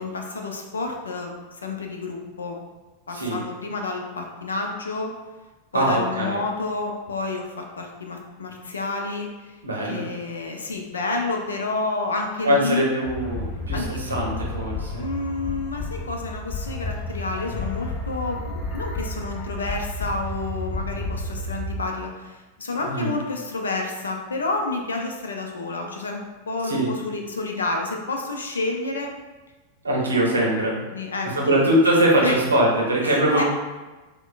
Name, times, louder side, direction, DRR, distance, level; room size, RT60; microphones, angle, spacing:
voice 1, 0.0-1.3 1.6-2.6 3.1-5.1 5.7-9.6 9.8-12.8 13.7-14.0 15.0-29.1 30.9-31.6 32.2-32.4 33.0-33.4, left 3 dB, 70° left, 2 dB, 0.4 m, -29 dB
voice 2, 5.7-6.4 9.6-10.0 12.4-15.1 22.9-23.1 26.6-26.9 29.8-30.8 31.4-33.4, right 1 dB, 75° right, -3 dB, 0.7 m, -22 dB
sound 1, 13.1-21.8, left 2 dB, 30° left, 0.8 m, -31 dB
4.2 x 2.1 x 2.4 m, 1.2 s
figure-of-eight pair, 90°, 0 cm